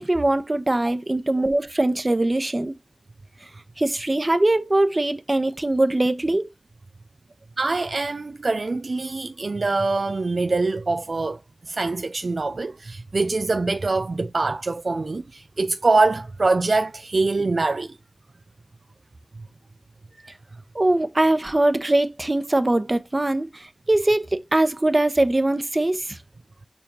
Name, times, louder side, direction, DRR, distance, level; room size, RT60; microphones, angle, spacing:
voice 1, 0.0-2.7 3.8-6.5 20.7-26.2, right 2 dB, 40° right, 1.0 m, -22 dB
voice 2, 7.6-11.4 11.7-18.0, right 3 dB, 75° right, 0.4 m, -24 dB
7.1 x 5.2 x 3.0 m
wide cardioid pair, 55°, 0 cm